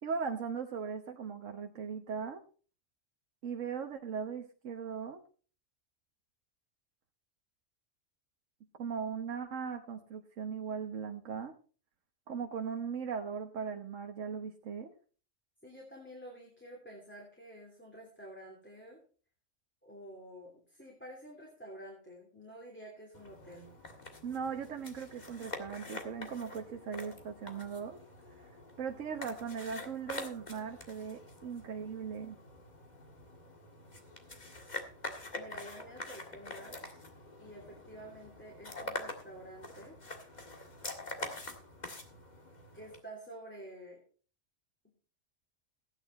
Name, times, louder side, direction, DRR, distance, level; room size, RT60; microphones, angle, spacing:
voice 1, 0.0-2.4 3.4-5.2 8.8-11.5 12.3-14.9 24.2-28.0 28.3-32.4, right 6 dB, 85° right, 4 dB, 1.4 m, -39 dB
voice 2, 15.6-19.0 19.8-23.7 35.3-36.8 37.4-40.0 42.7-44.0 44.8-44.9, right 1 dB, 10° left, -2 dB, 3.0 m, -50 dB
sound 1, 23.1-43.0, left 2 dB, 35° left, 1.9 m, -46 dB
15.5 x 10.0 x 4.2 m, 0.41 s
omnidirectional pair, 1.3 m